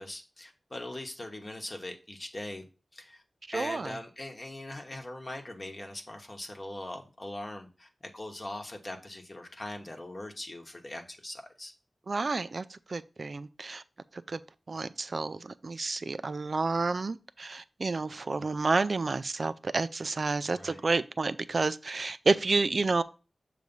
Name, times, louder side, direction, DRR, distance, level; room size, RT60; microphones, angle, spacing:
voice 1, 0.0-2.7 2.9-3.2 3.5-11.7 20.5-20.9, left 1 dB, 35° left, 1.0 m, -41 dB
voice 2, 3.5-3.9 12.1-13.8 14.3-14.4 14.7-23.0, right 3 dB, 55° right, 0.4 m, -30 dB
6.8 x 3.2 x 5.3 m
wide cardioid pair, 95°, 0 cm